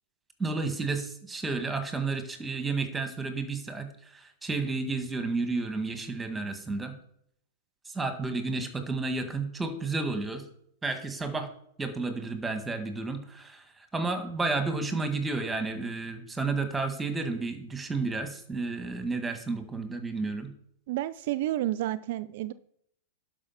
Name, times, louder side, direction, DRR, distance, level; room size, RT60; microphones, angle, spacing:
voice 1, 0.4-3.9 4.1-6.9 7.9-10.4 10.8-11.5 11.8-13.6 13.9-20.5, right 3 dB, 10° right, 7 dB, 1.8 m, -31 dB
voice 2, 20.9-22.5, right 14 dB, 60° right, 16 dB, 0.5 m, -30 dB
11.0 x 5.4 x 5.8 m, 0.71 s
hypercardioid pair, 110°, 0 cm